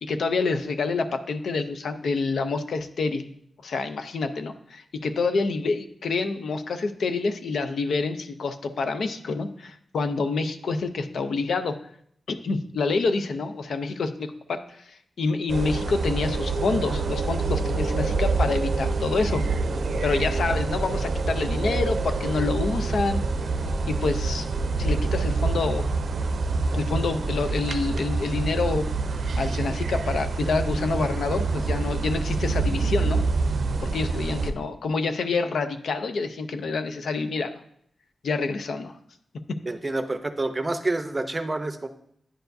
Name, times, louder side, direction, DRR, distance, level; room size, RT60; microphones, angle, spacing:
voice 1, 0.0-3.3 3.6-11.8 12.3-19.4 20.0-23.2 23.9-24.5 24.8-25.8 26.7-28.9 29.4-33.2 33.8-37.6 38.2-39.0, left 4 dB, 80° left, 9 dB, 0.5 m, -27 dB
sound 1, 15.5-34.5, right 3 dB, 70° right, 0.5 m, -26 dB
voice 2, 39.7-41.9, right 2 dB, 25° right, 8 dB, 0.6 m, -28 dB
10.0 x 4.5 x 2.6 m, 0.68 s
wide cardioid pair, 105°, 0 cm